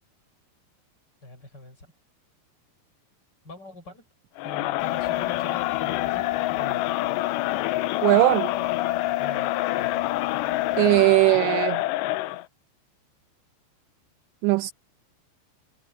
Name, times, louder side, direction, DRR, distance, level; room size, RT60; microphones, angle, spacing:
voice 1, 1.2-1.9 3.4-4.0 4.4-6.9 9.2-10.1, left 1 dB, 20° left, 6.6 m, -44 dB
Crowd, 4.4-12.4, left 17 dB, 90° left, 2.5 m, -27 dB
sound 1, 4.8-11.1, left 14 dB, 60° left, 4.2 m, -36 dB
voice 2, 8.0-8.5 10.7-11.8 14.4-14.7, right 21 dB, 85° right, 2.5 m, -19 dB
omnidirectional pair, 5.6 m